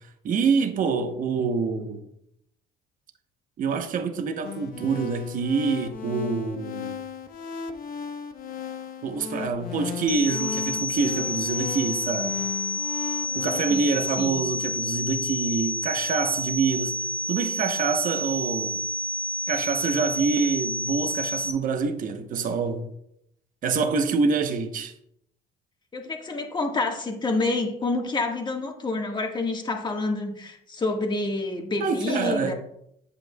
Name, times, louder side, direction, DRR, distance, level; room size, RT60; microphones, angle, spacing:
voice 1, 0.2-2.0 3.6-7.0 9.0-12.4 13.3-17.0 17.3-18.8 19.5-22.9 23.6-24.9 31.8-32.5, right 5 dB, 55° right, 0.9 m, -26 dB
sound 1, 4.4-13.8, left 7 dB, 60° left, 1.0 m, -36 dB
sound 2, 10.1-21.5, left 1 dB, 25° right, 1.4 m, -29 dB
voice 2, 25.9-32.5, left 3 dB, 25° left, 1.5 m, -28 dB
9.8 x 8.1 x 2.3 m
cardioid pair, 110°, 17 cm